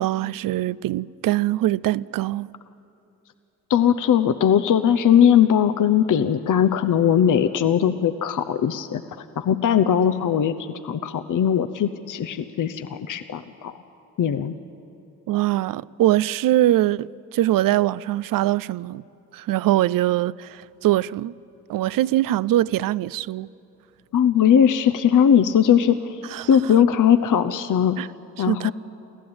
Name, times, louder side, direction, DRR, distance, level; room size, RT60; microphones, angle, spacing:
voice 1, 0.0-2.5 15.3-19.0 19.3-21.3 21.7-23.5 26.3-26.5 28.0-28.1 28.4-28.7, right 14 dB, 70° right, 0.5 m, -22 dB
voice 2, 3.7-10.5 10.8-13.7 14.2-14.5 24.1-26.2 26.5-28.0 28.4-28.7, left 9 dB, 60° left, 0.8 m, -19 dB
23.5 x 15.0 x 8.8 m
supercardioid pair, 40°, 35 cm